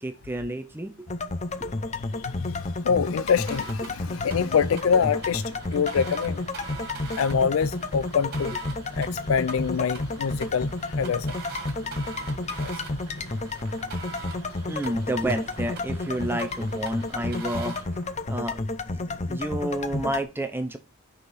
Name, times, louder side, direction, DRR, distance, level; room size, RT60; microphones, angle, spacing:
voice 1, 0.0-1.1 1.6-1.7 14.7-17.8 18.3-18.6 18.9-19.0 19.3-20.8, right 1 dB, 10° right, 0.6 m, -30 dB
sound 1, 1.1-20.2, left 2 dB, 30° left, 0.6 m, -31 dB
voice 2, 1.9-6.4 7.2-8.6 8.9-11.3 12.6-12.7, left 6 dB, 70° left, 0.4 m, -26 dB
sound 2, 3.4-17.8, right 5 dB, 45° right, 2.1 m, -43 dB
sound 3, 4.0-18.4, right 3 dB, 75° right, 1.3 m, -49 dB
6.5 x 5.7 x 5.4 m
head